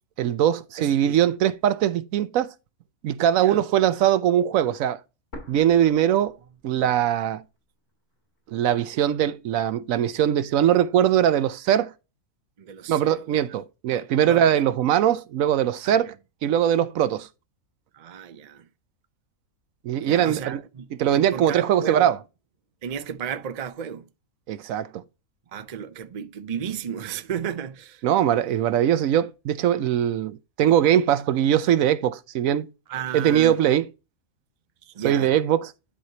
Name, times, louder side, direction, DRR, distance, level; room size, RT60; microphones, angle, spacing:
voice 1, 0.2-2.5 3.0-5.0 5.5-6.3 6.6-7.4 8.5-11.9 12.9-16.1 16.4-17.3 19.8-20.6 21.0-22.2 24.5-24.9 28.0-32.7 33.1-33.9 35.0-35.7, right 10 dB, 75° right, 1.0 m, -21 dB
voice 2, 0.8-1.2 3.4-3.6 12.6-13.4 14.3-14.4 15.8-16.0 17.9-18.7 19.9-22.1 22.8-24.1 25.5-28.0 32.9-33.6 34.9-35.3, right 8 dB, 55° right, 0.4 m, -34 dB
sound 1, 5.3-7.3 7.6-7.7 8.4-9.3, left 1 dB, 50° left, 2.8 m, -46 dB
11.0 x 4.5 x 2.8 m
omnidirectional pair, 1.5 m